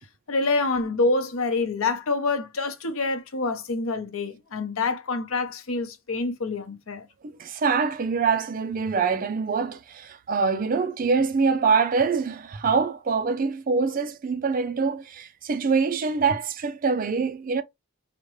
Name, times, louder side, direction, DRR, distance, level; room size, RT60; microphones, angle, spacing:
voice 1, 0.3-7.1, left 3 dB, 80° left, 0.7 m, -26 dB
voice 2, 7.2-17.6, right 5 dB, 40° right, 0.4 m, -24 dB
4.9 x 2.1 x 3.1 m
head